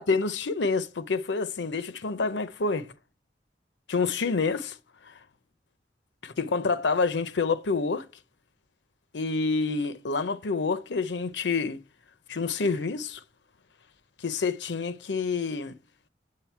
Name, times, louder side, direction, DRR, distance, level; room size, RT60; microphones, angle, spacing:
voice 1, 0.0-2.9 3.9-4.8 5.1-5.2 6.2-8.0 9.1-11.8 12.3-13.2 14.2-15.8, left 4 dB, 90° left, 0.7 m, -28 dB
7.9 x 7.6 x 4.5 m
head